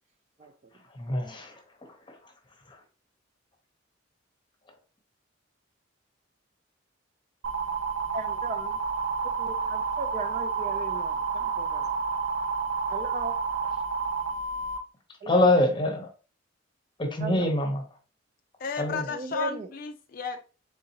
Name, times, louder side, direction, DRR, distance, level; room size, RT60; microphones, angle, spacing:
voice 1, 0.9-2.3 2.7-2.8 15.3-16.1 17.0-17.8 18.8-19.1, left 1 dB, 25° left, 0.8 m, -26 dB
sound 1, 7.4-14.8, right 5 dB, 75° right, 0.7 m, -30 dB
voice 2, 8.1-8.8 9.2-11.9 12.9-13.3 15.2-15.5 17.2-17.5 19.1-19.7, right 3 dB, 35° right, 0.3 m, -37 dB
voice 3, 18.6-20.4, left 6 dB, 45° left, 0.4 m, -33 dB
3.9 x 3.7 x 2.8 m
head